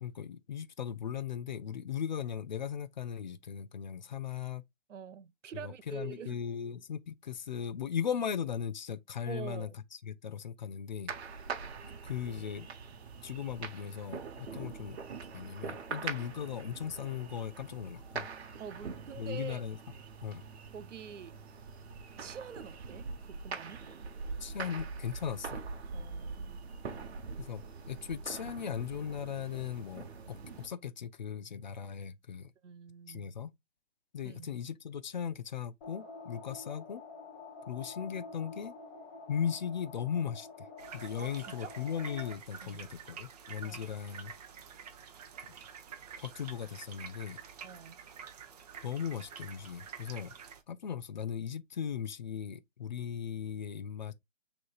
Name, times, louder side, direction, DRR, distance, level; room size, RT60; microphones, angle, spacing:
voice 1, 0.0-4.6 5.6-9.7 10.0-11.1 11.8-12.7 13.2-15.0 15.3-18.3 19.2-19.8 20.2-20.4 24.4-25.6 27.4-32.5 33.1-33.5 34.1-37.0 37.7-38.7 39.3-40.7 40.9-44.3 46.2-47.4 48.8-50.3 50.7-54.1, left 8 dB, 40° left, 0.4 m, -38 dB
voice 2, 4.9-6.4 9.3-9.7 18.6-19.6 20.7-21.4 22.2-23.8 25.9-26.6 32.6-33.3 34.2-34.5 41.2-41.3 41.6-41.7 42.6-42.8 43.6-43.9 47.6-48.0, right 7 dB, 80° right, 0.6 m, -45 dB
sound 1, 11.1-30.7, right 5 dB, 60° right, 1.0 m, -43 dB
sound 2, 35.8-42.3, left 3 dB, 25° left, 1.0 m, -48 dB
sound 3, 40.8-50.6, right 7 dB, 35° right, 0.7 m, -48 dB
6.0 x 3.1 x 2.3 m
hypercardioid pair, 145°, 37 cm